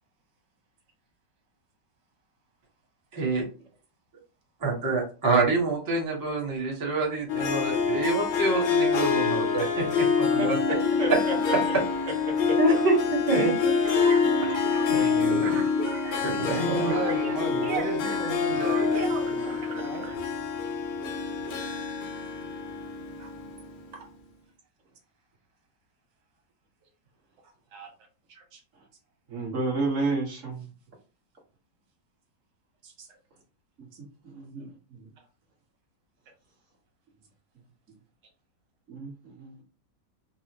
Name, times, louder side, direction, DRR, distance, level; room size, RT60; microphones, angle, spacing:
voice 1, 3.1-3.4 4.6-10.6 12.6-13.5 14.9-15.5 16.2-16.9, right 3 dB, 15° right, 0.7 m, -27 dB
Harp, 7.3-23.8, left 5 dB, 70° left, 1.0 m, -26 dB
voice 2, 10.4-11.6 12.5-12.6 13.6-13.7 15.4-15.6 29.3-30.6 34.2-35.1 38.9-39.6, right 3 dB, 50° right, 1.4 m, -32 dB
sound 1, 13.8-20.2, right 6 dB, 70° right, 0.9 m, -37 dB
voice 3, 16.5-20.1 23.2-23.3 23.9-24.0 27.7-27.9 28.3-28.6 32.8-33.1, right 3 dB, 85° right, 1.6 m, -36 dB
4.2 x 2.0 x 2.8 m
omnidirectional pair, 1.8 m